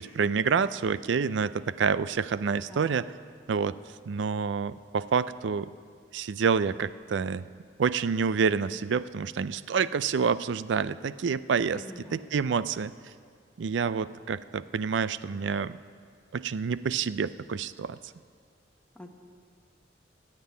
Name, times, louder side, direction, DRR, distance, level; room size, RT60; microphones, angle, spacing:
voice 1, 0.0-3.1 3.5-3.8 4.1-5.7 6.1-7.5 7.8-11.8 12.1-12.9 13.6-15.8 16.3-18.0, right 6 dB, 85° right, 16 dB, 0.4 m, -28 dB
voice 2, 2.6-3.0 11.7-12.3 18.9-19.1, left 1 dB, 5° left, 2 dB, 1.1 m, -46 dB
14.5 x 7.6 x 9.5 m, 2.1 s
head